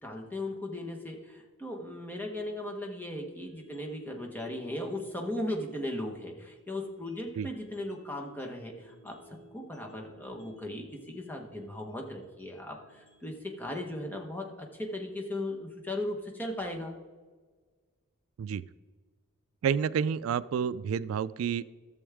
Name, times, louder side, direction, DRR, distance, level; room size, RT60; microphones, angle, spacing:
voice 1, 0.0-9.1 9.5-16.9, left 1 dB, 10° left, 1 dB, 1.1 m, -37 dB
sound 1, 3.4-15.4, equal, 90° left, 3.1 m, -58 dB
voice 2, 19.6-21.6, right 7 dB, 85° right, 17 dB, 0.3 m, -29 dB
13.5 x 7.1 x 3.5 m, 1.4 s
head